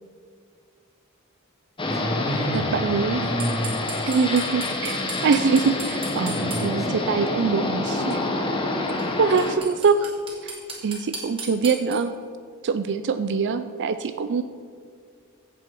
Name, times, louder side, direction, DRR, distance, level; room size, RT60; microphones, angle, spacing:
sound 1, 1.8-9.5, left 2 dB, 25° left, 1.2 m, -27 dB
voice 1, 1.8-3.8 6.2-7.0, right 1 dB, ahead, 0 dB, 1.5 m, -29 dB
voice 2, 2.5-3.3 4.1-8.2 9.2-10.1 10.4-10.5 10.8-12.1 12.6-14.4, right 5 dB, 55° right, 10 dB, 0.4 m, -23 dB
sound 2, 3.4-6.6 9.0-9.1 9.4-12.0, right 4 dB, 25° right, 2.6 m, -34 dB
15.5 x 7.4 x 4.9 m, 2.2 s
head